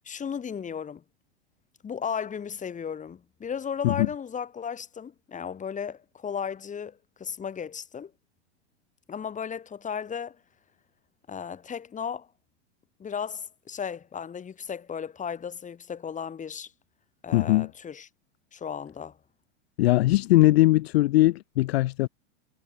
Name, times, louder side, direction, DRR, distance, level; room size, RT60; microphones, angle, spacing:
voice 1, 0.0-1.0 1.8-8.1 9.1-10.4 11.3-12.3 13.0-16.7 17.2-18.1 18.5-19.2, left 7 dB, 20° left, 6.2 m, -35 dB
voice 2, 17.3-17.7 19.8-22.1, left 17 dB, 60° left, 0.6 m, -20 dB
hypercardioid pair, 100°, 35 cm